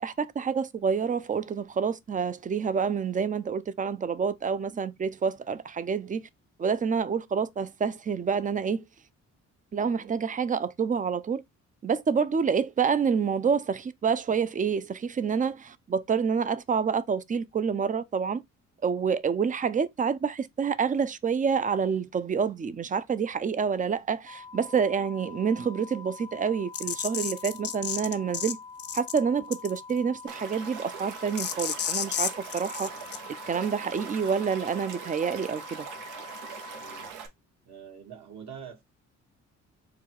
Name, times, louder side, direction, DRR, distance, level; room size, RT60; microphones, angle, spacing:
voice 1, 0.0-6.3 6.6-8.8 9.7-11.4 11.8-18.4 18.8-28.6 28.9-32.9 33.5-35.9, right 6 dB, 25° right, 0.4 m, -28 dB
sound 1, 24.3-37.1, left 5 dB, 15° left, 0.6 m, -46 dB
sound 2, 26.7-28.5 28.8-29.2 29.5-29.9 31.4-33.2, left 8 dB, 50° left, 0.7 m, -31 dB
Stream / Liquid, 30.3-37.3, right 7 dB, 85° right, 1.0 m, -42 dB
voice 2, 36.8-37.2 37.6-38.8, right 7 dB, 65° right, 1.5 m, -45 dB
3.8 x 2.3 x 4.6 m
cardioid pair, 90°, 30 cm